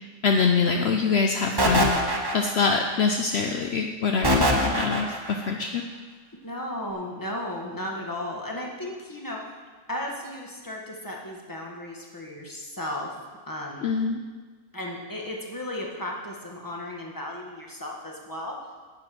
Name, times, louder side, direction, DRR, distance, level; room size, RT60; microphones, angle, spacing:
voice 1, 0.0-5.8 13.8-14.2, left 5 dB, 60° left, 3 dB, 0.9 m, -25 dB
sound 1, 1.6-2.8 4.2-5.3, equal, 20° right, 1.2 m, -23 dB
voice 2, 6.4-9.4 9.9-13.1 13.5-13.9 14.7-18.6, left 1 dB, 15° left, -1 dB, 1.6 m, -35 dB
10.0 x 8.6 x 6.0 m, 1.4 s
omnidirectional pair, 1.3 m